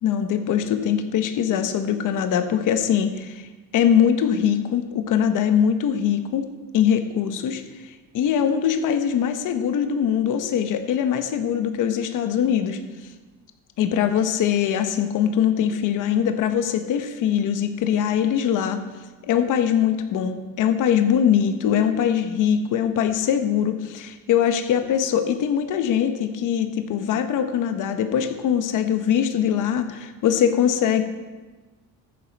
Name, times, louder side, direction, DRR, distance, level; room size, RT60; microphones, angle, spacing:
voice 1, 0.0-7.6 8.1-12.8 13.8-18.8 19.2-31.0, left 9 dB, 60° left, 8 dB, 1.0 m, -22 dB
14.0 x 7.7 x 4.1 m, 1.3 s
cardioid pair, 145°, 36 cm